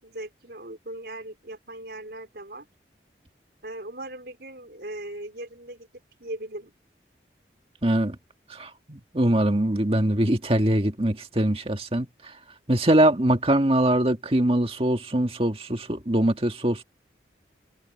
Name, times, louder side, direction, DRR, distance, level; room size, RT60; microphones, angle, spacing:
voice 1, 0.0-2.7 3.6-5.9 6.2-6.7, right 1 dB, 65° right, 4.4 m, -38 dB
voice 2, 7.8-8.2 8.5-12.3 12.7-16.8, right 1 dB, 35° right, 1.8 m, -23 dB
head